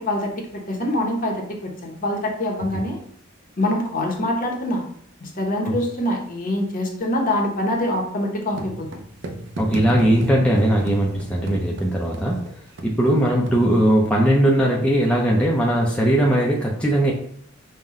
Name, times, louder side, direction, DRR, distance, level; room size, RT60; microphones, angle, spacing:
voice 1, 0.0-3.0 3.6-4.8 5.2-8.9, left 1 dB, 40° left, 1 dB, 0.8 m, -24 dB
sound 1, 8.5-14.3, right 1 dB, 55° right, 0.6 m, -33 dB
voice 2, 9.6-12.4 12.8-17.1, right 1 dB, 5° left, -3 dB, 0.5 m, -19 dB
5.5 x 2.2 x 3.6 m, 0.66 s
head